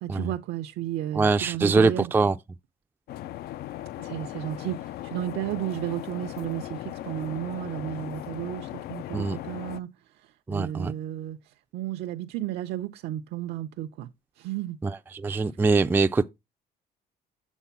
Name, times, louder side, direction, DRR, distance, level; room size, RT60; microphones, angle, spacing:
voice 1, 0.0-2.1 4.0-14.1 14.4-14.8 15.3-15.5, right 13 dB, 80° right, 0.6 m, -33 dB
voice 2, 1.2-2.4 9.1-9.4 10.5-10.9 14.8-16.3, right 4 dB, 10° right, 0.3 m, -23 dB
sound 1, 3.1-9.8, left 14 dB, 65° left, 0.4 m, -38 dB
7.2 x 3.8 x 5.7 m
cardioid pair, 110°, 17 cm